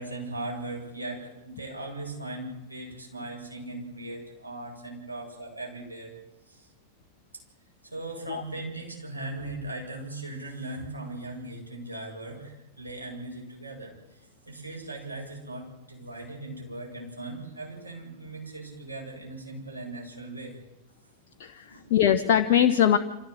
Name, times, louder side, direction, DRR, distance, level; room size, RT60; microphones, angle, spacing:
voice 1, 0.0-6.1 6.4-6.7 7.3-7.4 7.8-20.6 21.7-21.9, right 2 dB, 80° right, -1 dB, 8.0 m, -39 dB
voice 2, 21.4-23.0, left 9 dB, 50° left, 7 dB, 1.1 m, -22 dB
26.5 x 15.5 x 7.9 m, 1.0 s
figure-of-eight pair, 90°, 0 cm